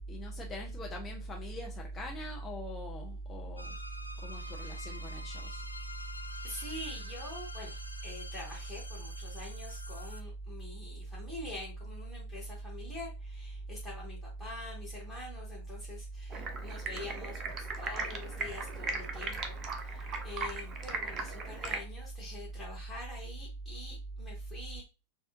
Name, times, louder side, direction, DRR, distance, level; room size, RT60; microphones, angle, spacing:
voice 1, 0.1-3.8 4.2-5.6, equal, 20° left, 0.7 m, -40 dB
sound 1, 3.6-10.2, left 1 dB, 90° right, 0.3 m, -47 dB
voice 2, 6.4-24.8, left 2 dB, ahead, 1.6 m, -46 dB
Stream, 16.3-21.8, right 3 dB, 30° right, 0.6 m, -38 dB
4.2 x 2.4 x 2.5 m
figure-of-eight pair, 90°, 0 cm